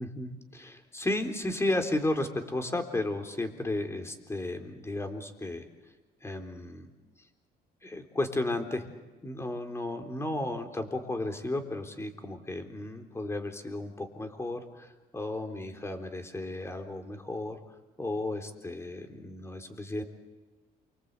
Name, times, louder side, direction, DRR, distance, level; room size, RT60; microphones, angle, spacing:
voice 1, 0.0-5.7 6.2-6.9 7.8-8.9 9.2-17.6 18.0-20.0, left 2 dB, 15° left, 5 dB, 3.8 m, -34 dB
28.5 x 25.0 x 8.4 m, 1.2 s
cardioid pair, 110°, 17 cm